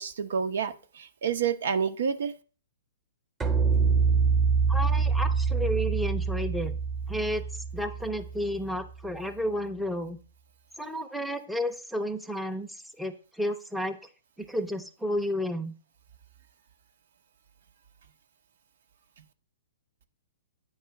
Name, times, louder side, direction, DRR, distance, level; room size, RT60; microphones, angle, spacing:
voice 1, 0.0-2.3, right 6 dB, 70° right, 9 dB, 0.7 m, -29 dB
sound 1, 3.4-8.6, right 5 dB, 15° right, 0.9 m, -25 dB
voice 2, 4.7-6.7 7.1-7.4 7.7-10.2 10.8-12.7 13.0-14.0 14.5-15.7, equal, ahead, 5 dB, 0.6 m, -31 dB
9.1 x 3.1 x 5.7 m, 0.39 s
hypercardioid pair, 145°, 0 cm